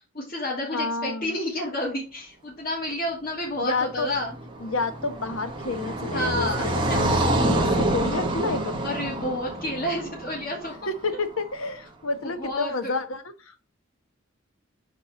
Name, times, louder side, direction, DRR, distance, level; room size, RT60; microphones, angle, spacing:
voice 1, 0.1-4.3 6.1-6.7 8.8-10.7 12.4-12.9, left 1 dB, 45° left, -7 dB, 2.8 m, -30 dB
voice 2, 0.7-1.3 3.6-4.1 4.6-7.1 7.5-8.9 10.9-13.6, left 3 dB, 85° left, 10 dB, 1.1 m, -30 dB
Car passing by, 4.0-11.2, right 1 dB, 25° right, 1.2 m, -27 dB
5.4 x 4.7 x 6.1 m, 0.32 s
head